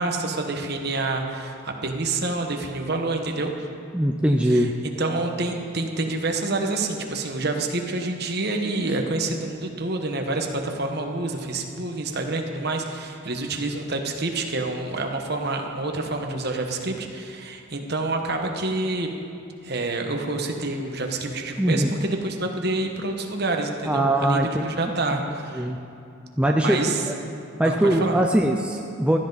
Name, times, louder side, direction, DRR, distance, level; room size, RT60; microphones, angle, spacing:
voice 1, 0.0-3.5 4.4-19.1 19.6-25.7 26.6-27.0 27.6-28.2, right 2 dB, 50° right, 3 dB, 1.2 m, -28 dB
voice 2, 3.9-4.7 21.6-21.9 23.9-24.6 25.5-25.8 26.4-26.8 27.1-27.2 27.6-29.2, right 1 dB, 5° right, 1 dB, 0.5 m, -21 dB
15.5 x 13.5 x 4.1 m, 2.5 s
head